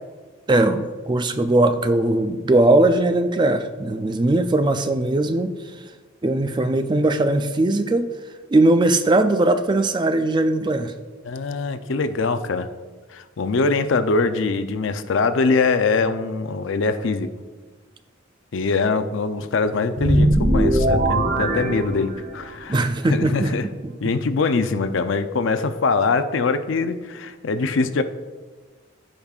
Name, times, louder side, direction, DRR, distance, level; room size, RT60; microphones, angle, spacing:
voice 1, 0.5-5.5 6.2-8.1 8.5-10.9 22.7-23.9, right 2 dB, 20° right, 9 dB, 0.3 m, -19 dB
voice 2, 11.2-12.7 13.1-17.3 18.5-23.7 24.0-28.0, left 4 dB, 65° left, 10 dB, 0.5 m, -23 dB
sound 1, 20.0-22.5, right 1 dB, 45° right, 0.8 m, -20 dB
15.0 x 5.2 x 2.4 m, 1.4 s
head